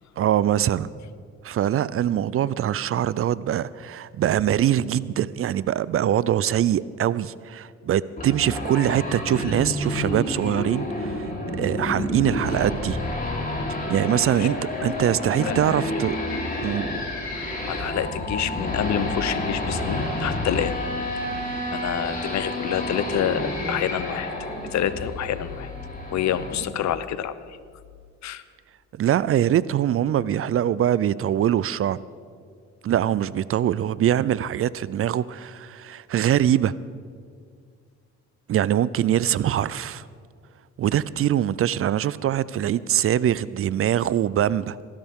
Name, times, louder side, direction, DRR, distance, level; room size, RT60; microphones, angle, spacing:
voice 1, 0.2-0.9 1.4-11.3 11.6-13.0 13.9-14.6 14.8-16.2 16.6-16.9 28.9-32.0 32.8-36.7 38.5-40.1 40.8-44.8, right 11 dB, 50° right, 19 dB, 0.4 m, -23 dB
sound 1, 8.2-26.6, left 1 dB, 30° left, 3.7 m, -29 dB
voice 2, 17.7-20.7 21.7-24.3 24.7-25.7 26.1-27.3 28.2-28.4, left 10 dB, 65° left, 14 dB, 0.8 m, -27 dB
18.0 x 15.5 x 3.7 m, 2.1 s
cardioid pair, 90°, 30 cm